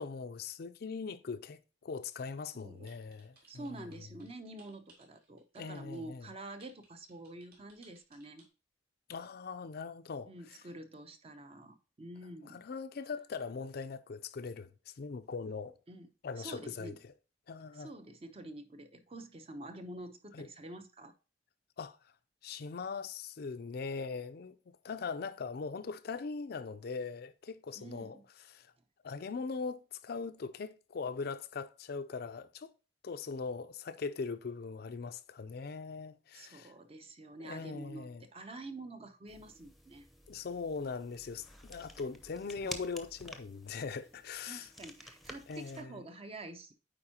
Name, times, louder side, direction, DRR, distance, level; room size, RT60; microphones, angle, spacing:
voice 1, 0.0-3.9 5.6-6.3 9.1-10.3 12.5-15.7 16.2-17.1 17.5-17.9 20.3-20.5 21.8-22.0 22.4-28.2 28.5-28.7 29.0-32.7 33.0-36.7 37.4-38.3 40.3-44.7 45.5-46.0, left 4 dB, 60° left, 0.5 m, -41 dB
voice 2, 2.5-2.9 3.5-8.4 10.2-12.6 15.9-16.1 16.4-17.0 17.7-21.1 27.8-28.2 36.3-40.1 42.6-42.8 44.4-46.7, right 2 dB, 35° right, 0.7 m, -47 dB
sound 1, 2.8-6.0 6.6-8.4, right 3 dB, 60° right, 2.9 m, -63 dB
sound 2, 39.3-45.8, left 1 dB, ahead, 0.7 m, -51 dB
8.9 x 4.4 x 2.8 m
head